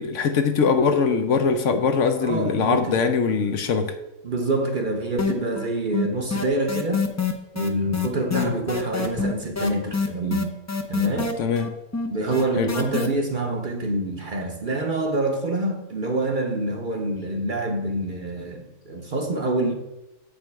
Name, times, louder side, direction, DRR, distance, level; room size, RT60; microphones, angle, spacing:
voice 1, 0.0-4.0 8.3-8.5 11.4-11.7 12.6-12.7, left 5 dB, 65° left, 7 dB, 1.0 m, -22 dB
voice 2, 2.2-3.0 4.2-7.1 7.5-10.5 10.9-11.4 12.1-19.7, right 2 dB, 45° right, 3 dB, 0.8 m, -26 dB
sound 1, 5.2-5.7 5.9-13.1, left 4 dB, 20° left, 0.4 m, -26 dB
7.6 x 5.3 x 4.6 m, 0.96 s
omnidirectional pair, 1.4 m